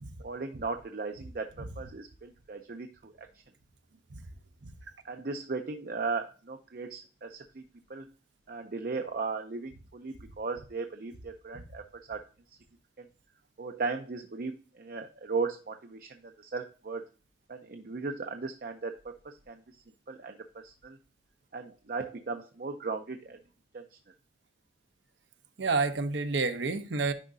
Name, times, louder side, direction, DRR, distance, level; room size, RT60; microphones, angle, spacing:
voice 1, 0.2-3.3 5.0-7.6 7.9-8.1 8.5-11.8 12.1-12.2 13.0-13.1 13.6-17.0 17.5-19.6 20.1-20.4 20.6-21.0 21.5-23.4 23.7-23.8, right 4 dB, 50° right, 0.6 m, -37 dB
voice 2, 25.6-27.1, right 4 dB, 75° right, 0.8 m, -29 dB
9.8 x 4.9 x 2.7 m
head